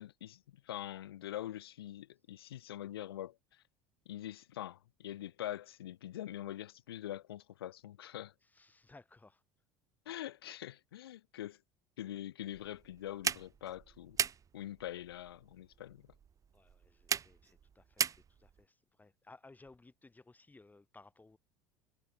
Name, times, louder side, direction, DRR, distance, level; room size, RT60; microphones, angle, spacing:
voice 1, 0.0-3.6 4.1-8.3 10.1-11.6 12.0-14.2 14.5-16.1, left 13 dB, 75° left, 0.4 m, -44 dB
voice 2, 8.4-9.4 16.5-21.4, left 3 dB, 15° left, 6.3 m, -60 dB
sound 1, 12.5-18.6, right 7 dB, 25° right, 0.6 m, -39 dB
figure-of-eight pair, 70°, 13 cm